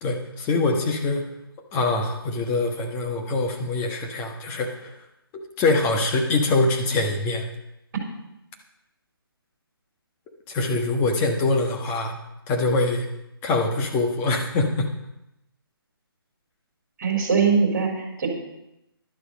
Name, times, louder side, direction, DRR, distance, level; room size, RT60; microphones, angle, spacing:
voice 1, 0.0-1.3 1.7-5.0 5.6-7.5 10.5-12.2 12.5-13.1 13.4-14.9, left 2 dB, 15° left, 2 dB, 1.2 m, -24 dB
voice 2, 17.0-18.3, right 5 dB, 45° right, 1 dB, 3.7 m, -21 dB
11.5 x 11.0 x 5.2 m, 0.88 s
hypercardioid pair, 160°, 13 cm